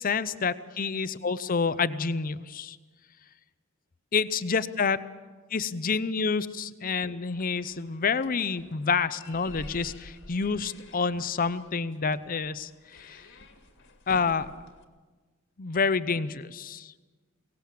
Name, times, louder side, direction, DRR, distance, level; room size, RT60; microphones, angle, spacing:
voice 1, 0.0-2.8 4.1-5.0 5.5-13.2 14.1-14.5 15.6-16.9, left 5 dB, 45° left, 15 dB, 0.7 m, -28 dB
sound 1, 7.2-14.8, left 2 dB, 65° left, 2.0 m, -50 dB
23.0 x 18.0 x 7.5 m, 1.4 s
head